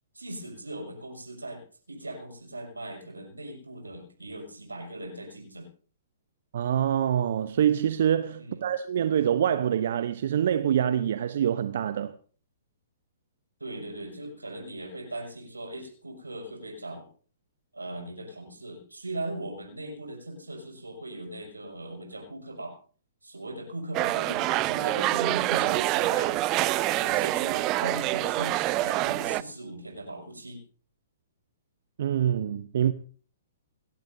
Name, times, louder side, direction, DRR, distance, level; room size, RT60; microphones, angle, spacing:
voice 1, 0.1-5.7 8.4-8.7 13.6-17.1 17.7-22.8 23.2-26.4 27.0-30.6, right 1 dB, 85° right, 5.9 m, -39 dB
voice 2, 6.5-12.1 32.0-32.9, right 9 dB, 60° right, 0.8 m, -25 dB
sound 1, 23.9-29.4, right 18 dB, 30° right, 0.5 m, -26 dB
28.5 x 12.0 x 2.7 m
figure-of-eight pair, 115°, 0 cm